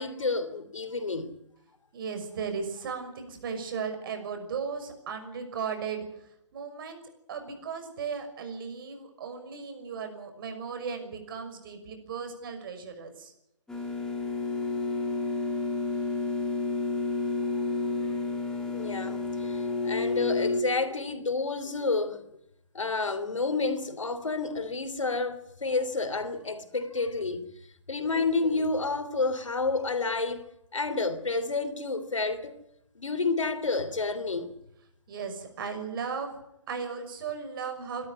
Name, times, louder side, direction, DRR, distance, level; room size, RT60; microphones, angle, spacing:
voice 1, 0.0-1.3 18.7-22.2 22.7-27.4 27.9-30.4 30.7-32.6 32.9-34.5, left 3 dB, 80° left, 3.2 m, -30 dB
voice 2, 1.9-6.1 6.5-7.0 7.3-13.3 35.1-36.4 36.7-38.1, right 6 dB, 45° right, 6.1 m, -36 dB
sound 1, 13.7-20.6, left 3 dB, 5° left, 3.6 m, -30 dB
26.0 x 13.0 x 9.8 m
hypercardioid pair, 145°, 16 cm